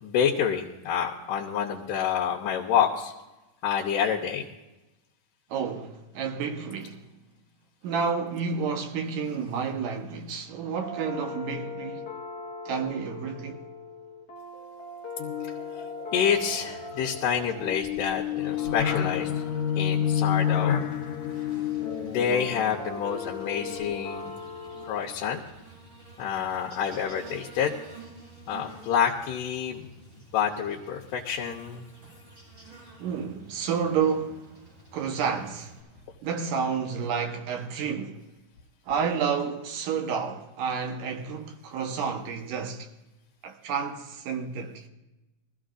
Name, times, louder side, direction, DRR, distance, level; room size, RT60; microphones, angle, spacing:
voice 1, 0.0-3.1 3.6-4.5 16.1-19.3 19.8-20.9 22.0-24.3 24.8-25.4 26.2-27.7 28.5-29.9 30.3-31.9, left 8 dB, 85° left, 2.5 m, -28 dB
voice 2, 5.5-7.0 7.8-12.1 12.7-13.6 33.0-34.5 34.9-35.8 36.2-38.2 38.9-42.9 43.4-44.8, right 6 dB, 85° right, 2.7 m, -30 dB
sound 1, 10.8-25.0, left 4 dB, 45° left, 1.5 m, -40 dB
sound 2, 15.2-24.3, left 9 dB, 70° left, 2.4 m, -30 dB
Buzz, 16.3-35.8, right 3 dB, 25° right, 5.7 m, -51 dB
21.5 x 14.5 x 2.5 m
omnidirectional pair, 3.7 m